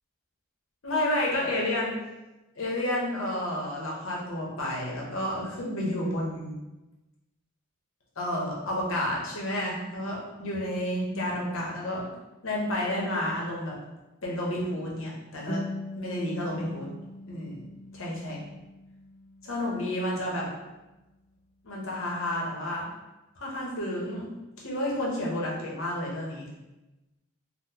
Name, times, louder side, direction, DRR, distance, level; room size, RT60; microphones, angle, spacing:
voice 1, 0.8-1.9 2.5-6.6 8.2-12.0 12.4-13.7 14.2-15.6 16.0-16.9 17.3-17.6 17.9-18.4 19.4-20.5 21.6-22.9 23.4-24.3 24.6-26.5, left 1 dB, 70° left, -3 dB, 0.8 m, -30 dB
sound 1, 15.5-20.5, left 1 dB, 40° left, 0.3 m, -41 dB
3.7 x 2.2 x 2.8 m, 1.0 s
head